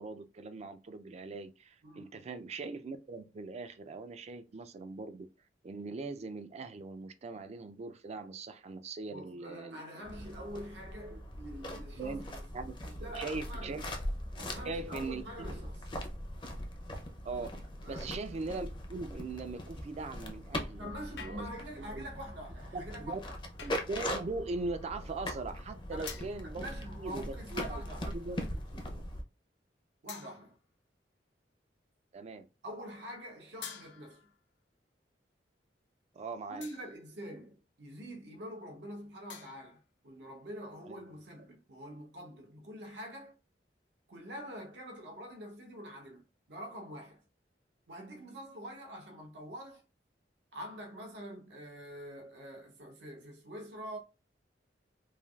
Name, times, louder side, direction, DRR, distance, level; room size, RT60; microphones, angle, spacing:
voice 1, 0.0-5.3 5.6-10.3 11.1-11.2 12.0-12.2 12.5-12.8 13.1-13.9 14.6-15.6 17.2-21.5 21.8-22.1 22.7-23.2 23.6-26.7 27.0-28.4 28.7-29.0 32.1-32.5 36.1-36.7 40.8-41.2, right 3 dB, 40° right, 0.3 m, -41 dB
voice 2, 1.8-2.2 9.1-12.5 12.8-13.8 14.4-15.9 17.8-18.1 20.8-23.3 25.9-26.2 26.6-28.1 30.0-30.6 32.6-34.2 36.5-43.3 44.1-46.2 46.5-47.2 47.9-49.8 50.5-54.0, equal, 80° right, 0.7 m, -45 dB
sound 1, 10.0-29.2, left 1 dB, 30° left, 0.5 m, -41 dB
sound 2, 21.2-21.8 23.6-24.0 26.1-26.5 27.6-28.0 28.7-28.8 30.1-30.7 33.6-34.4 36.6-37.1 39.3-39.8, left 7 dB, 75° left, 0.5 m, -49 dB
3.2 x 2.3 x 2.3 m
head